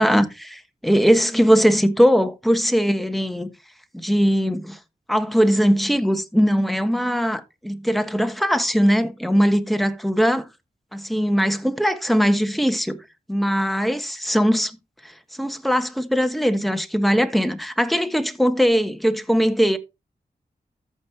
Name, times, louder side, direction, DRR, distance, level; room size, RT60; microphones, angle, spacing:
voice 1, 0.0-3.5 3.9-4.8 5.1-10.5 10.9-13.0 13.3-14.8 15.0-19.8, equal, ahead, 1.4 m, -20 dB
14.0 x 5.5 x 2.9 m
cardioid pair, 55°, 16 cm